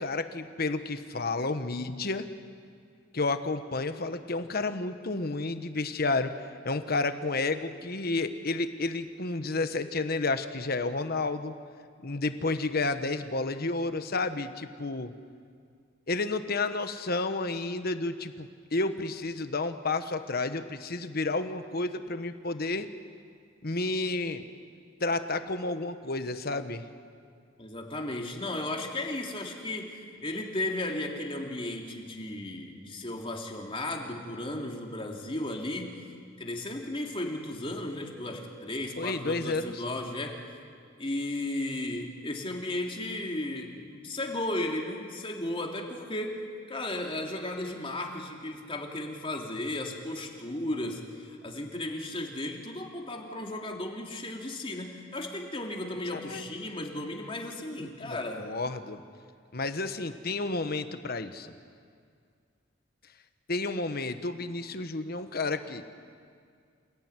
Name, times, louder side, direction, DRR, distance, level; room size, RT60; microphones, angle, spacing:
voice 1, 0.0-2.3 3.1-6.3 6.6-11.5 12.0-15.1 16.1-22.9 23.6-24.5 25.0-26.8 39.0-39.7 56.1-56.4 58.0-59.0 59.5-61.5 63.5-65.8, left 3 dB, 50° left, 9 dB, 1.3 m, -31 dB
voice 2, 27.6-36.0 36.4-40.4 41.0-58.5, left 1 dB, 30° left, 1 dB, 3.1 m, -35 dB
28.5 x 18.0 x 9.8 m, 2.2 s
head